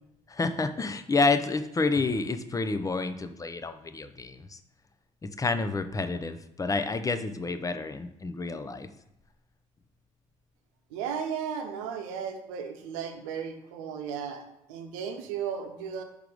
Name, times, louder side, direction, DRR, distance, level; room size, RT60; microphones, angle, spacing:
voice 1, 0.3-4.6 5.2-8.9, left 3 dB, 20° left, 9 dB, 0.6 m, -29 dB
voice 2, 10.9-14.4 14.7-16.0, right 7 dB, 70° right, 5 dB, 0.9 m, -35 dB
5.9 x 3.5 x 5.0 m, 0.84 s
figure-of-eight pair, 50°, 17 cm